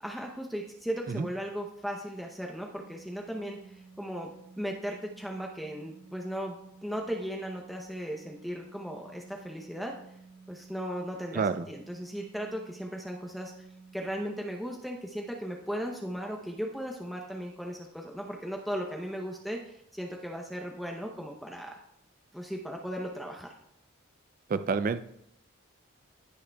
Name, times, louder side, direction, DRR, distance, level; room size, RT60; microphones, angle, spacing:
voice 1, 0.0-4.3 4.6-10.0 10.5-13.5 13.9-21.7 22.3-23.5, equal, ahead, 1 dB, 0.7 m, -37 dB
sound 1, 2.7-14.1, right 4 dB, 90° left, 1.6 m, -53 dB
voice 2, 11.3-11.7 24.5-25.0, right 5 dB, 40° right, 12 dB, 0.3 m, -28 dB
16.0 x 6.3 x 2.3 m, 0.74 s
head